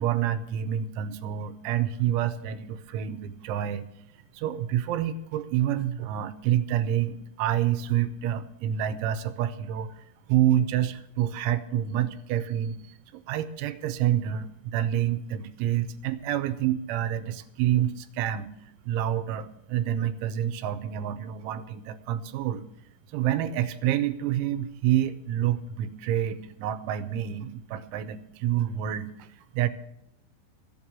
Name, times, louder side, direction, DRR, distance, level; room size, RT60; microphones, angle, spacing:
voice 1, 0.0-3.9 4.3-18.5 18.8-22.6 23.1-29.7, right 11 dB, 90° right, 11 dB, 3.1 m, -28 dB
14.0 x 8.0 x 7.4 m, 0.81 s
omnidirectional pair, 5.5 m